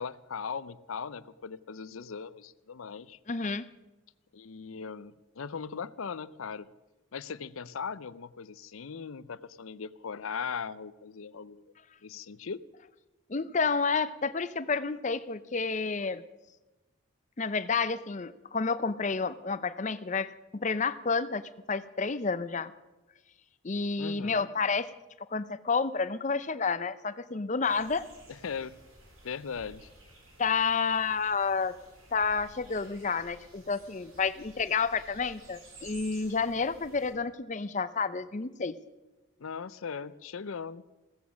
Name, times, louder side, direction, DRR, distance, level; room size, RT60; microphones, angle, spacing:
voice 1, 0.0-3.2 4.3-6.7 7.1-11.7 12.0-12.6 24.0-24.5 28.3-28.8 29.2-29.9 39.4-40.8, left 6 dB, 80° left, 17 dB, 0.6 m, -39 dB
voice 2, 3.3-3.6 13.3-16.2 17.4-22.7 23.6-24.9 25.3-28.1 30.4-31.8 32.1-38.8, left 5 dB, 35° left, 14 dB, 0.6 m, -30 dB
sound 1, 27.6-37.1, right 2 dB, 80° right, 4.7 m, -54 dB
16.0 x 14.0 x 6.3 m, 1.1 s
head